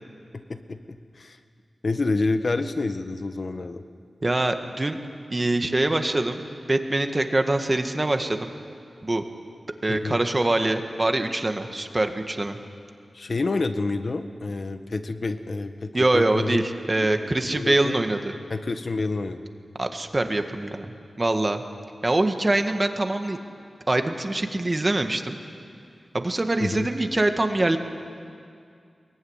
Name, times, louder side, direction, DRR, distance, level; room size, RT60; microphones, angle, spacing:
voice 1, 0.3-1.4 1.8-3.8 9.9-10.2 13.1-16.6 17.0-17.3 17.5-18.0 18.5-19.5 26.6-26.9, left 3 dB, 55° left, 8 dB, 1.5 m, -28 dB
voice 2, 4.2-5.0 5.3-6.4 6.7-8.5 9.0-9.2 9.8-12.6 15.9-18.3 19.8-20.9 21.2-21.6 22.0-23.4 23.9-25.4 26.1-27.8, right 2 dB, 30° right, 6 dB, 1.8 m, -24 dB
22.5 x 22.5 x 9.8 m, 2.3 s
wide cardioid pair, 80°, 0 cm